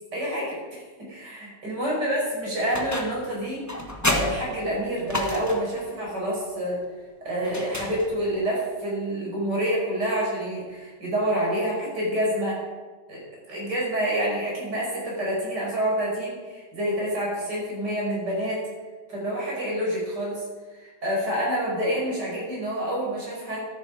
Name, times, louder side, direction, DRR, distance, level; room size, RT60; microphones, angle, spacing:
voice 1, 0.1-0.8 1.1-3.6 4.1-6.8 7.2-12.6 13.1-13.2 13.5-18.6 19.1-20.5 20.8-23.7, equal, 85° right, -4 dB, 5.7 m, -27 dB
sound 1, 2.7-3.3 3.7-5.8 7.4-8.4, left 1 dB, 10° left, 1.3 m, -30 dB
14.0 x 11.0 x 5.1 m, 1.4 s
omnidirectional pair, 1.8 m